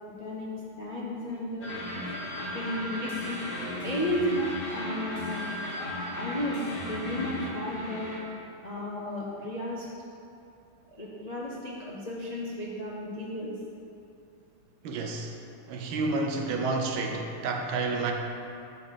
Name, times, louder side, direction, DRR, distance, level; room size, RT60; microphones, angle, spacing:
voice 1, 0.2-0.5 0.8-1.7 2.5-3.4 3.8-5.4 6.1-8.2 8.6-9.9 10.9-13.5, left 1 dB, 65° left, -6 dB, 0.4 m, -33 dB
sound 1, 1.6-8.2, left 1 dB, 35° left, 0.9 m, -36 dB
voice 2, 14.8-15.4 15.7-18.1, right 3 dB, 75° right, 2 dB, 1.6 m, -30 dB
8.6 x 4.1 x 6.4 m, 2.7 s
omnidirectional pair, 2.3 m